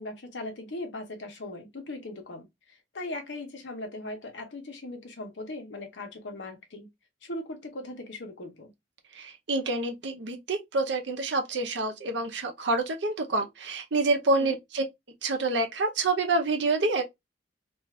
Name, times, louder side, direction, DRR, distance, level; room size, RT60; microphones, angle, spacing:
voice 1, 0.0-6.9 7.2-8.7 14.3-14.6, left 2 dB, 70° left, 0.8 m, -39 dB
voice 2, 9.1-14.8 15.2-17.0, right 2 dB, 70° right, 0.7 m, -27 dB
2.5 x 2.4 x 3.1 m
head